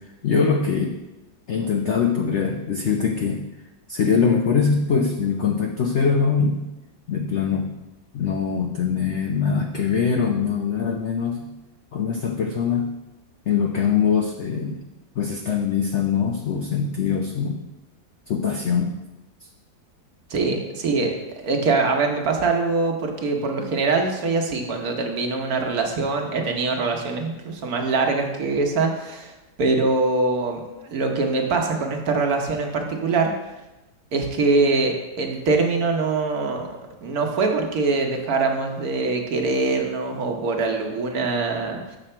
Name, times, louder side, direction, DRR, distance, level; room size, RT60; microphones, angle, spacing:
voice 1, 0.2-1.0 1.5-3.4 3.9-6.6 7.1-7.7 8.1-11.5 11.9-12.9 13.5-14.8 15.2-17.6 18.3-19.0, left 6 dB, 75° left, 3 dB, 0.6 m, -22 dB
voice 2, 20.3-33.3 34.1-41.8, right 3 dB, 60° right, 2 dB, 1.3 m, -23 dB
7.6 x 6.1 x 4.3 m, 1.0 s
omnidirectional pair, 1.9 m